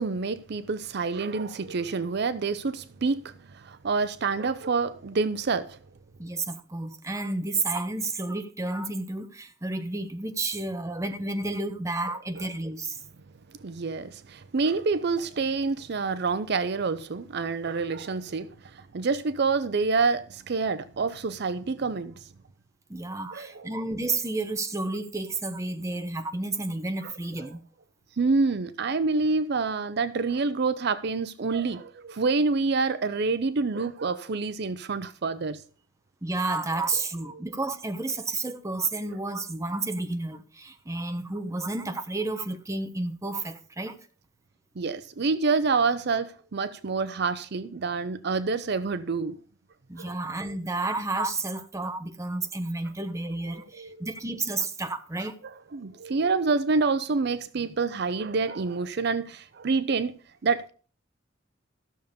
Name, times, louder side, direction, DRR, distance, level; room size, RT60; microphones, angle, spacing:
voice 1, 0.0-5.8 13.6-22.1 23.3-23.7 28.2-35.6 44.8-49.3 50.0-50.1 53.8-54.1 55.7-60.1 60.4-60.7, right 4 dB, 60° right, 0.6 m, -27 dB
voice 2, 6.2-13.0 22.9-27.6 36.2-44.0 49.9-55.4, right 2 dB, 15° right, 1.0 m, -31 dB
13.0 x 6.8 x 5.1 m
head